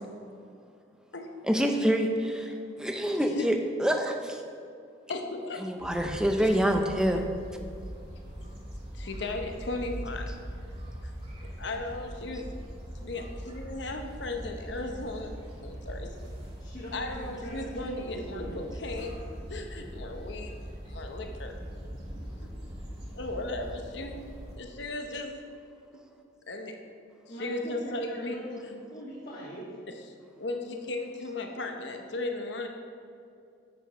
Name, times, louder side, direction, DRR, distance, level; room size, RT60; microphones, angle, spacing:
voice 1, 1.4-2.5 2.8-4.4 5.5-7.2 10.3-10.4, equal, 5° right, 4 dB, 0.6 m, -26 dB
voice 2, 5.1-5.6 6.4-6.6 9.0-10.3 11.6-12.5 13.0-15.3 15.6-16.1 16.9-19.1 19.5-20.5 20.9-21.5 23.1-24.1 24.6-25.3 26.5-26.7 27.4-28.4 30.4-32.7, left 2 dB, 65° left, 4 dB, 0.9 m, -36 dB
sound 1, 5.8-24.6, equal, 30° right, 2.1 m, -41 dB
voice 3, 16.6-18.6 27.3-29.8, equal, 45° left, -9 dB, 1.9 m, -41 dB
8.2 x 6.6 x 5.1 m, 2.5 s
head